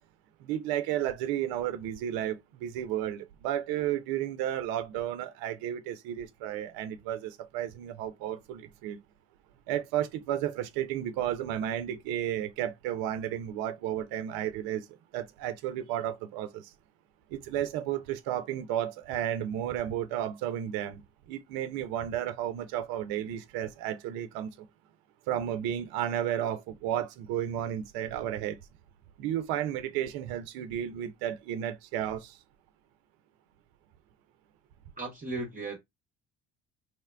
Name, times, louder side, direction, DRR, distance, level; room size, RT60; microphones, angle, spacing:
voice 1, 0.4-9.0 9.7-14.8 15.1-16.7 17.3-21.0 21.3-24.5 25.3-28.6 29.2-32.4, right 11 dB, 75° right, 0.5 m, -33 dB
voice 2, 35.0-35.8, right 3 dB, 20° right, 0.7 m, -36 dB
2.9 x 2.1 x 2.2 m
hypercardioid pair, 60°, 38 cm